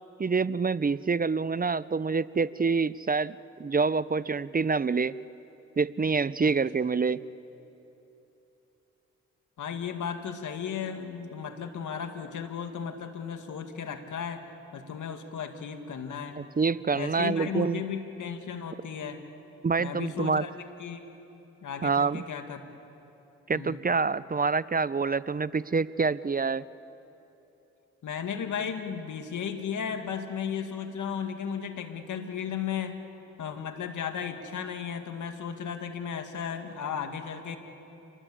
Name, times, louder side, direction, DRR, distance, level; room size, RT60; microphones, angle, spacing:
voice 1, 0.2-5.2 5.8-7.2 16.4-17.8 19.6-20.4 21.8-22.2 23.5-26.7, right 4 dB, 30° right, 18 dB, 0.6 m, -27 dB
voice 2, 9.6-14.5 14.7-16.4 16.9-19.2 19.8-20.5 20.8-21.0 21.6-22.6 23.5-23.8 28.0-33.0 33.4-37.6, left 7 dB, 80° left, 6 dB, 2.1 m, -35 dB
28.0 x 21.5 x 8.6 m, 3.0 s
supercardioid pair, 45°, 30 cm